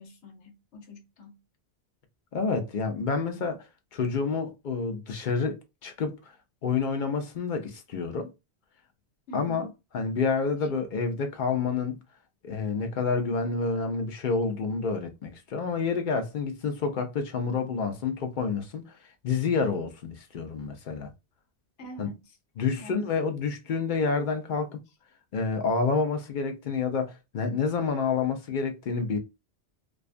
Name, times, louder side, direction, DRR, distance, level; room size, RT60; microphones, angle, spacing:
voice 1, 0.0-1.4 9.3-9.7 10.6-10.7 21.8-22.4 22.7-23.2, equal, 85° left, 1.0 m, -44 dB
voice 2, 2.3-3.7 3.9-6.3 6.6-8.3 9.3-9.7 9.9-12.0 12.4-19.0 19.2-21.1 22.0-22.1 22.6-24.8 25.3-29.2, left 5 dB, 55° left, 0.6 m, -28 dB
2.4 x 2.3 x 2.4 m
omnidirectional pair, 1.1 m